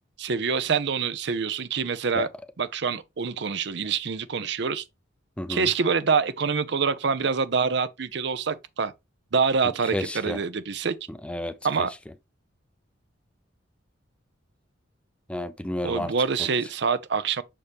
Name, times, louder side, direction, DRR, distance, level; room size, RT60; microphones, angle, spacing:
voice 1, 0.2-2.3 2.6-4.8 5.5-8.9 9.3-11.0 11.6-11.9 15.8-17.4, right 5 dB, 60° right, 0.6 m, -26 dB
voice 2, 5.4-5.7 9.9-10.4 11.1-11.9 15.3-16.1, left 1 dB, 5° left, 0.4 m, -31 dB
6.6 x 4.3 x 3.4 m
head